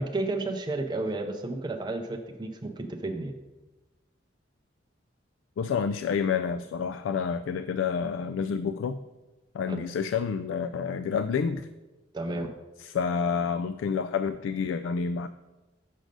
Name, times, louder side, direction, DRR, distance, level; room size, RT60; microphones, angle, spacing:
voice 1, 0.0-3.3 9.7-9.8 12.1-12.5, right 2 dB, 20° right, 4 dB, 0.5 m, -32 dB
voice 2, 5.6-9.0 9.5-11.7 12.8-15.3, left 6 dB, 80° left, 11 dB, 0.3 m, -29 dB
6.4 x 6.2 x 5.1 m, 1.1 s
head